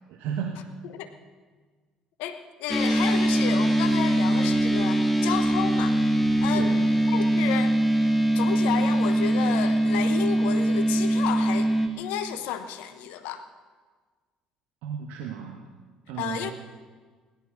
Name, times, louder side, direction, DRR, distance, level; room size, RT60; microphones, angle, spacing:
voice 1, 0.1-0.7 6.5-6.9 14.8-15.6 16.1-16.5, right 8 dB, 65° right, 4 dB, 1.2 m, -34 dB
voice 2, 2.2-6.0 6.4-7.8 8.3-11.7 12.0-13.4 16.2-16.5, left 10 dB, 65° left, 9 dB, 1.0 m, -32 dB
sound 1, 2.7-11.9, right 1 dB, ahead, 2.6 m, -22 dB
17.0 x 12.0 x 6.5 m, 1.4 s
hypercardioid pair, 55°, 3 cm